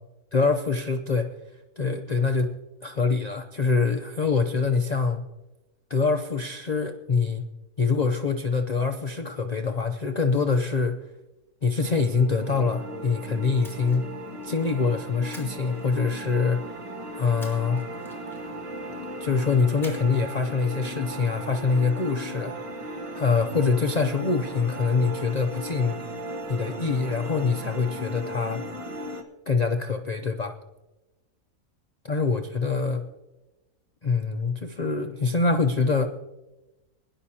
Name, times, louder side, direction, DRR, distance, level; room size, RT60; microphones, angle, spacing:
voice 1, 0.3-1.3 1.8-2.5 2.8-5.2 5.9-7.4 7.8-11.0 11.6-14.0 14.4-16.6 17.2-17.8 19.2-22.5 23.2-26.0 26.5-28.6 29.5-30.6 32.0-33.0 34.0-36.1, left 4 dB, 90° left, 6 dB, 0.3 m, -24 dB
sound 1, 11.7-29.2, right 1 dB, 25° right, 1.0 m, -37 dB
Splash splatter, 13.6-14.8 15.3-16.5 17.4-18.7 19.8-20.3 20.6-20.8, equal, ahead, 4.2 m, -48 dB
22.0 x 11.0 x 2.8 m, 1.0 s
omnidirectional pair, 1.6 m